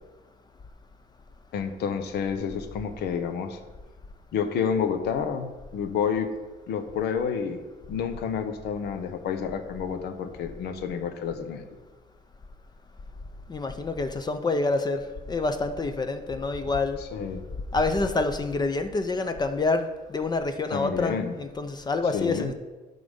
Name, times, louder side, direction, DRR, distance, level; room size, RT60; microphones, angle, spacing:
voice 1, 1.5-3.6 4.3-6.3 6.7-7.6 7.9-11.7 17.0-17.4 20.7-21.3 22.1-22.5, left 7 dB, 75° left, 8 dB, 0.9 m, -29 dB
voice 2, 13.5-17.0 17.7-22.5, left 3 dB, 25° left, 8 dB, 0.5 m, -27 dB
10.5 x 4.0 x 5.3 m, 1.2 s
cardioid pair, 110°, 17 cm